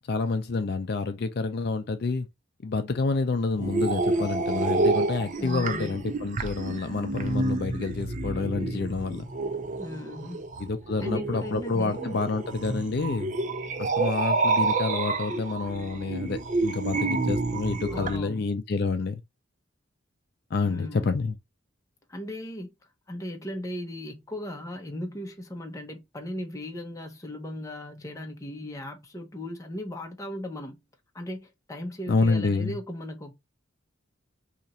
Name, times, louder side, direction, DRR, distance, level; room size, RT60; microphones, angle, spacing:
voice 1, 0.1-2.3 2.6-9.3 10.6-13.3 13.8-19.2 20.5-21.4 32.1-32.8, left 4 dB, 55° left, 0.4 m, -28 dB
sound 1, 3.6-18.2, right 3 dB, 40° right, 0.5 m, -29 dB
voice 2, 5.4-6.0 9.8-10.5 11.0-12.2 17.9-18.5 20.6-21.1 22.1-22.7 23.1-30.8 31.1-33.3, left 1 dB, 15° left, 0.7 m, -37 dB
2.9 x 2.5 x 4.1 m
head